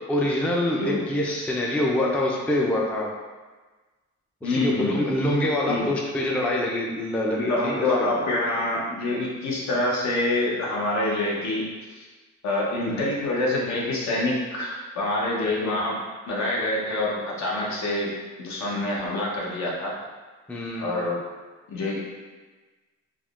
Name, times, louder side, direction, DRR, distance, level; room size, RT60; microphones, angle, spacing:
voice 1, 0.1-3.1 4.4-7.8 12.8-13.1 20.5-20.9, left 1 dB, 5° left, -2 dB, 0.3 m, -25 dB
voice 2, 4.4-5.0 5.7-5.9 7.4-12.1 12.4-20.0 20.8-21.2 21.7-22.0, left 2 dB, 65° left, -3 dB, 0.8 m, -26 dB
3.4 x 2.1 x 2.4 m, 1.3 s
cardioid pair, 90°, 30 cm